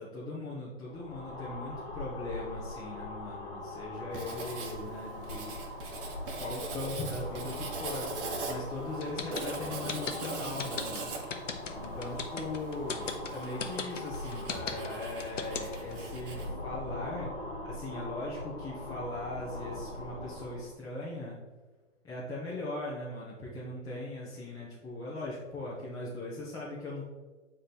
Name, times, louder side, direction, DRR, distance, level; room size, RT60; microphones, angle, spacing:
voice 1, 0.0-5.5 6.4-11.1 11.7-17.3 17.6-21.4 22.0-27.0, left 2 dB, 10° left, -9 dB, 1.4 m, -39 dB
sound 1, 0.8-20.7, left 2 dB, 45° left, 1.9 m, -41 dB
Writing, 4.1-16.5, right 3 dB, 45° right, 1.5 m, -41 dB
sound 2, 9.0-15.9, left 6 dB, 80° left, 1.1 m, -36 dB
8.8 x 3.8 x 4.5 m, 1.3 s
hypercardioid pair, 135°, 37 cm